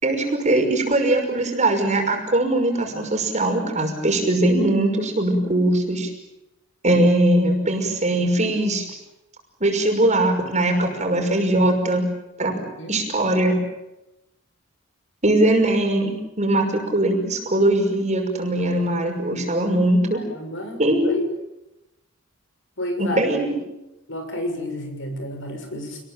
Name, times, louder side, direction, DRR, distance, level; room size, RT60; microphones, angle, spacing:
voice 1, 0.0-6.1 6.8-8.8 9.6-12.0 12.4-12.6 12.9-13.6 15.2-20.2 20.8-21.1 23.0-23.6, right 1 dB, 35° right, 3 dB, 5.8 m, -20 dB
voice 2, 20.1-21.3 22.8-23.3 24.1-26.0, left 1 dB, 60° left, 6 dB, 6.5 m, -31 dB
28.5 x 20.5 x 9.1 m, 0.96 s
head